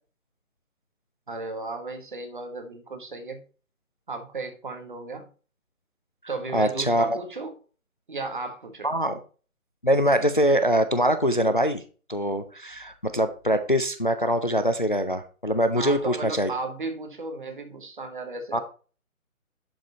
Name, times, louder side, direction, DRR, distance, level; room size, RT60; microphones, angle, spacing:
voice 1, 1.3-3.4 4.1-5.3 6.3-7.5 8.1-8.9 15.7-18.6, right 3 dB, 35° right, 5 dB, 1.5 m, -35 dB
voice 2, 6.5-7.2 8.8-9.2 9.8-11.8 12.1-16.5 18.5-18.6, equal, 35° left, 9 dB, 0.6 m, -23 dB
11.0 x 4.9 x 4.0 m, 0.37 s
figure-of-eight pair, 155°, 43 cm